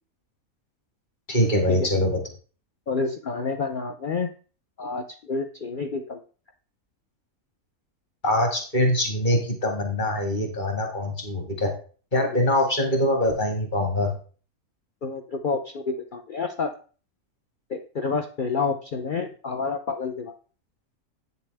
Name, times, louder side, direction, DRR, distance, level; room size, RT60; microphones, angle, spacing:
voice 1, 1.3-2.2 8.2-11.7 12.1-14.1, left 1 dB, 35° left, 2 dB, 2.1 m, -23 dB
voice 2, 2.9-4.3 4.8-6.2 15.0-16.7 17.7-20.3, left 4 dB, 55° left, 6 dB, 0.6 m, -29 dB
8.6 x 6.9 x 3.4 m, 0.39 s
omnidirectional pair, 1.5 m